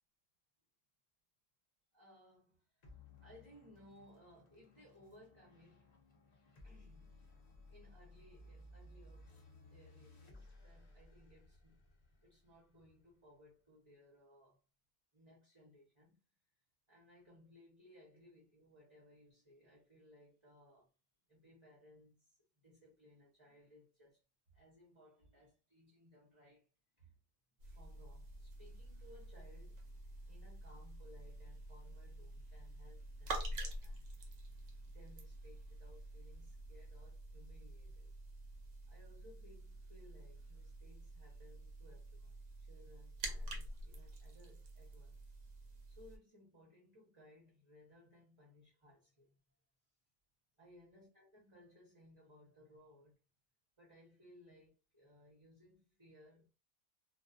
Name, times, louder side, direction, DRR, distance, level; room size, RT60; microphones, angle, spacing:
voice 1, 1.9-2.9 3.2-5.9 6.6-7.1 7.7-9.3 9.7-11.8 12.2-14.6 15.1-16.2 16.9-20.9 21.3-22.4 22.6-24.2 24.5-26.7 27.0-27.1 27.6-29.9 30.3-34.0 34.9-38.1 38.9-45.2 45.9-49.3 50.6-53.2 53.8-56.5, left 1 dB, 30° right, 0.6 m, -63 dB
sound 1, 2.8-13.6, left 2 dB, 45° left, 0.5 m, -60 dB
sound 2, 27.6-46.2, right 1 dB, 70° right, 0.9 m, -48 dB
2.3 x 2.3 x 2.4 m
omnidirectional pair, 1.5 m